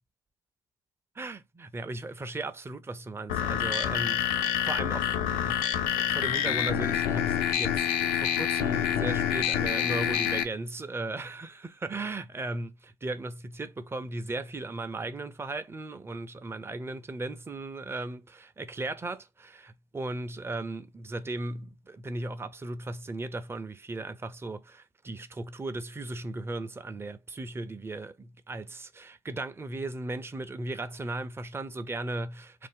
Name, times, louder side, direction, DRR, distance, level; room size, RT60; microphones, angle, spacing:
voice 1, 1.2-32.7, right 2 dB, 15° right, 0.5 m, -37 dB
sound 1, 3.3-10.4, left 9 dB, 80° left, 0.4 m, -27 dB
2.6 x 2.0 x 3.4 m
supercardioid pair, 60°, 15 cm